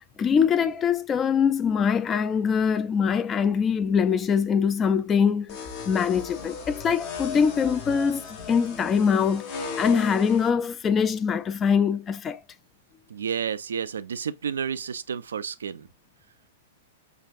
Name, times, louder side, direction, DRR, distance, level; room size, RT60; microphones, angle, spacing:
voice 1, 0.2-5.6 5.9-8.2 8.5-12.4, left 6 dB, 20° left, 0.4 m, -23 dB
sound 1, 5.5-10.5, left 4 dB, 40° left, 0.8 m, -36 dB
voice 2, 13.1-15.9, right 7 dB, 65° right, 0.3 m, -31 dB
5.8 x 2.4 x 2.5 m
figure-of-eight pair, 105°, 0 cm